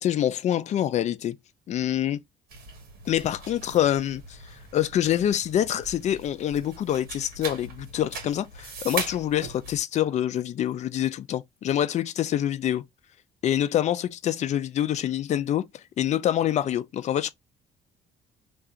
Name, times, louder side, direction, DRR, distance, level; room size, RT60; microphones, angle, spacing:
voice 1, 0.0-1.4 1.7-2.2 3.1-4.4 4.7-12.8 13.4-17.3, left 11 dB, 45° left, 0.4 m, -26 dB
sound 1, 2.5-9.8, right 4 dB, 65° right, 1.3 m, -39 dB
2.4 x 2.3 x 2.8 m
cardioid pair, 110°, 17 cm